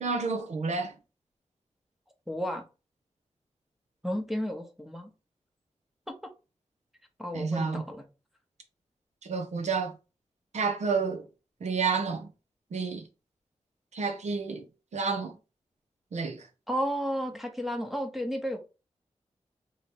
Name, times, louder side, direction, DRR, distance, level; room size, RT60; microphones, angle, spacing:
voice 1, 0.0-0.9 7.3-7.8 9.2-9.9 10.5-11.2 11.6-12.3 12.7-13.0 13.9-14.6 14.9-15.3 16.1-16.5, right 5 dB, 80° right, 0.9 m, -30 dB
voice 2, 2.3-2.6 4.0-5.1 6.1-6.3 7.2-8.0 16.7-18.6, equal, ahead, 0.8 m, -32 dB
3.4 x 3.1 x 4.3 m
wide cardioid pair, 110°, 12 cm